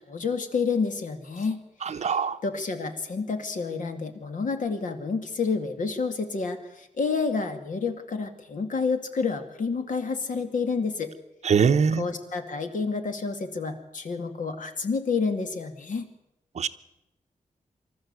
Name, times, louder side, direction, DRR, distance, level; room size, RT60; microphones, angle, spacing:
voice 1, 0.1-1.6 1.9-11.1 11.9-16.1, left 4 dB, 70° left, 2.3 m, -29 dB
voice 2, 2.0-2.4 11.4-12.0 16.6-16.7, right 6 dB, 55° right, 0.9 m, -22 dB
25.0 x 13.5 x 8.2 m
wide cardioid pair, 180°, 14 cm